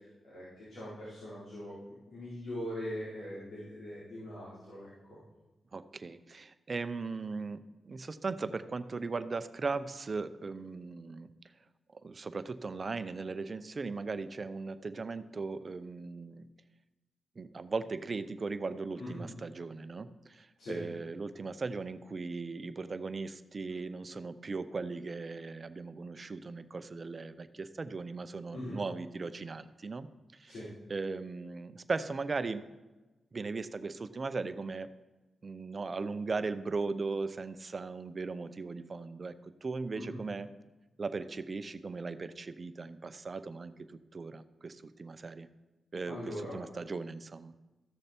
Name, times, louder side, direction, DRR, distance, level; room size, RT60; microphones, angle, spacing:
voice 1, 0.0-1.8 2.1-5.2 19.0-19.2 20.6-20.8 28.5-28.8 30.5-30.7 39.9-40.2 46.1-46.6, equal, 80° left, -9 dB, 4.1 m, -41 dB
voice 2, 5.7-11.3 11.9-16.5 17.4-30.1 30.3-30.5 30.9-32.6 33.3-34.9 35.4-40.5 41.0-45.5 45.9-47.5, right 4 dB, 45° right, 12 dB, 0.7 m, -38 dB
14.5 x 6.6 x 4.4 m, 1.1 s
cardioid pair, 60°, 0 cm